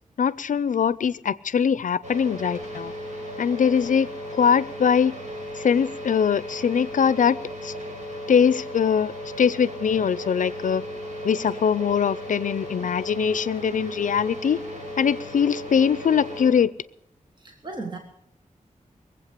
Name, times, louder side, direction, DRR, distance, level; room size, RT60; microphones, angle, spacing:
voice 1, 0.2-2.9 3.4-4.1 4.3-5.1 5.6-7.4 7.6-7.7 8.3-9.1 9.4-10.8 11.2-14.6 15.0-16.7, left 7 dB, 75° left, 18 dB, 0.5 m, -22 dB
sound 1, 2.0-16.5, equal, 60° right, 6.3 m, -36 dB
voice 2, 17.4-18.0, right 3 dB, 35° right, 3 dB, 1.5 m, -35 dB
22.0 x 8.0 x 6.7 m, 0.75 s
wide cardioid pair, 110°, 13 cm